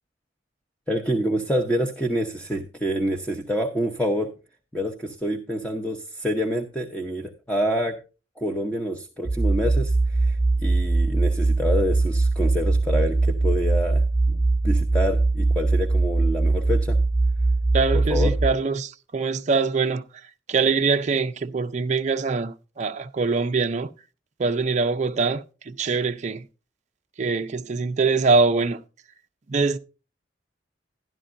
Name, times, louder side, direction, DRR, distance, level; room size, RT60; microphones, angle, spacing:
voice 1, 0.9-4.3 4.7-8.0 8.4-14.0 14.3-17.0 17.9-18.3, equal, 5° left, 0.8 m, -27 dB
sound 1, 9.2-18.5, right 2 dB, 90° left, 6.7 m, -21 dB
voice 2, 17.7-20.0 20.5-23.9 24.4-26.4 27.2-28.8 29.5-29.8, right 4 dB, 40° right, 0.5 m, -23 dB
12.5 x 11.5 x 2.5 m
head